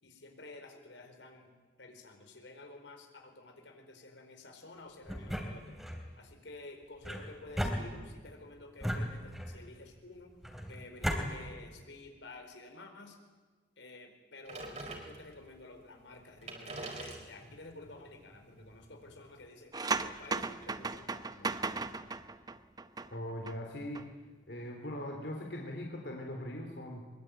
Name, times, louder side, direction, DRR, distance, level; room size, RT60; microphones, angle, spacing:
voice 1, 0.0-1.5 1.8-5.8 6.2-10.3 10.7-13.2 13.8-14.8 15.1-21.8, left 2 dB, 85° left, 5 dB, 4.7 m, -51 dB
sound 1, 5.1-6.0 7.0-8.3 8.8-9.7 10.4-11.2, equal, ahead, 3.4 m, -36 dB
sound 2, 14.5-15.5 16.1-16.2 16.4-19.4, right 2 dB, 40° right, 4.8 m, -46 dB
sound 3, 19.7-23.6 23.8-24.0, right 4 dB, 20° right, 0.8 m, -36 dB
voice 2, 23.1-24.1 24.5-27.1, left 1 dB, 65° left, 1 dB, 3.2 m, -40 dB
23.5 x 23.0 x 9.1 m, 1.4 s
head